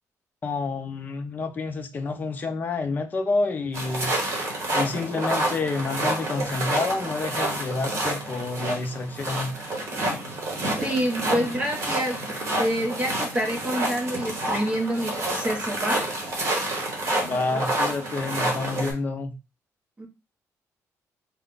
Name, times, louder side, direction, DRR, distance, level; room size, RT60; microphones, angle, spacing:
voice 1, 0.4-4.1 4.7-9.5 17.2-19.3, left 3 dB, 30° left, 0.5 m, -28 dB
sound 1, 3.7-18.9, right 1 dB, 50° right, 1.3 m, -29 dB
voice 2, 10.8-16.1 20.0-20.1, equal, 20° right, 0.9 m, -27 dB
4.2 x 2.2 x 3.8 m
cardioid pair, 165°, 6 cm